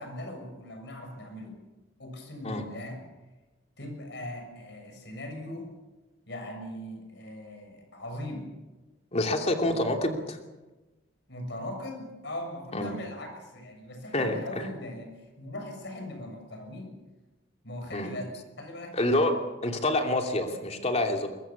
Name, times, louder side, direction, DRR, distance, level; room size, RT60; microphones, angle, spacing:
voice 1, 0.0-1.6 2.0-3.0 3.8-5.7 6.3-8.5 9.4-9.9 11.3-16.9 17.6-19.4, left 1 dB, 65° left, 5 dB, 6.9 m, -40 dB
voice 2, 9.1-10.4 12.7-13.0 14.1-14.7 17.9-18.1 18.9-19.3 19.6-21.3, left 1 dB, 35° left, 3 dB, 2.8 m, -27 dB
22.5 x 22.0 x 7.2 m, 1.2 s
head